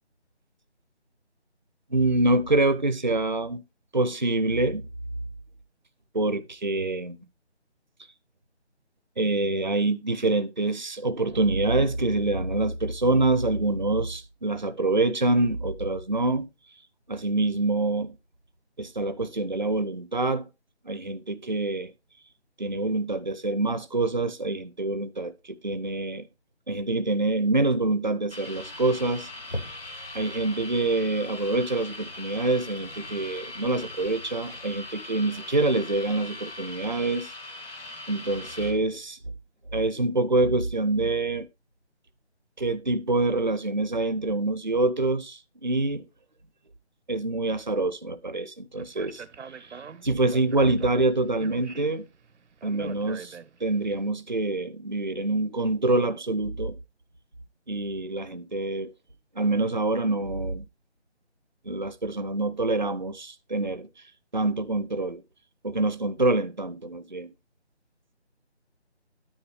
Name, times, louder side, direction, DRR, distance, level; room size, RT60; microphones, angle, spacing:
voice 1, 1.9-3.6 3.9-4.9 6.1-7.2 9.2-16.5 17.1-18.2 18.8-20.4 20.8-21.9 22.6-26.3 26.7-29.8 30.1-37.3 38.1-39.2 39.7-41.5 42.6-46.0 47.1-52.0 52.6-56.8 57.7-58.9 59.4-60.7 61.6-63.9 64.3-65.2 65.6-67.3, right 2 dB, 45° right, 0.4 m, -26 dB
sound 1, 28.3-38.7, left 2 dB, 55° left, 2.5 m, -41 dB
sound 2, 28.6-35.0, left 1 dB, 40° left, 0.6 m, -45 dB
Speech, 48.8-53.8, right 6 dB, 85° right, 0.7 m, -43 dB
9.8 x 9.1 x 3.1 m
figure-of-eight pair, 175°, 34 cm